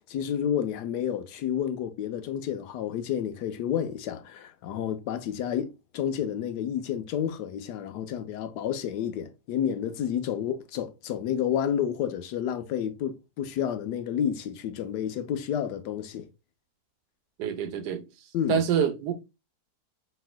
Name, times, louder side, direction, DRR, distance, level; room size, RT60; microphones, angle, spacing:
voice 1, 0.0-5.7 5.9-16.3 18.3-18.6, left 9 dB, 85° left, 1.2 m, -30 dB
voice 2, 17.4-18.0 18.5-19.1, right 8 dB, 80° right, 1.2 m, -26 dB
4.3 x 4.3 x 2.2 m
omnidirectional pair, 1.7 m